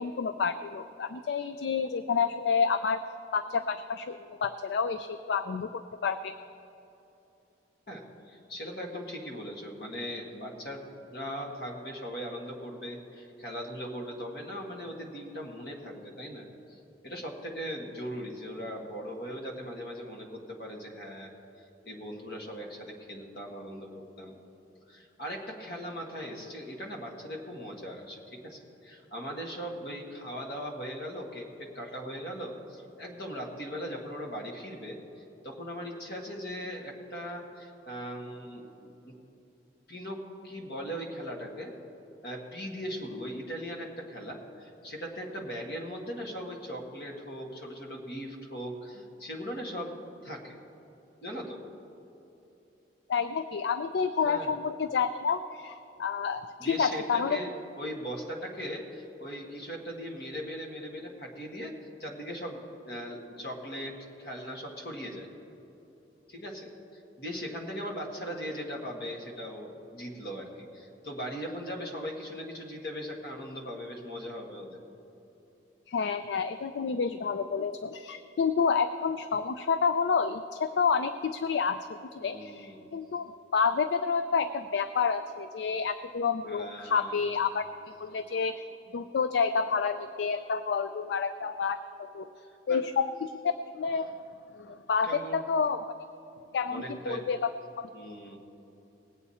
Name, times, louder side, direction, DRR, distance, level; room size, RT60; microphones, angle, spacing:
voice 1, 0.0-3.0 3.3-5.7 6.0-6.3 53.1-57.4 75.9-81.8 82.2-87.6 88.0-88.7 88.9-92.3 92.7-94.1 94.6-95.8 96.5-97.5 97.8-97.9, left 5 dB, 75° left, 11 dB, 0.4 m, -29 dB
voice 2, 7.9-24.4 24.9-39.1 39.9-41.8 42.2-50.0 50.2-50.6 51.2-51.6 54.3-54.5 56.6-65.3 66.3-74.8 82.2-82.9 86.4-87.3 92.4-92.9 95.0-95.4 96.7-97.3 97.9-98.4, equal, 55° left, 0 dB, 1.7 m, -39 dB
19.5 x 8.2 x 4.2 m, 3.0 s
head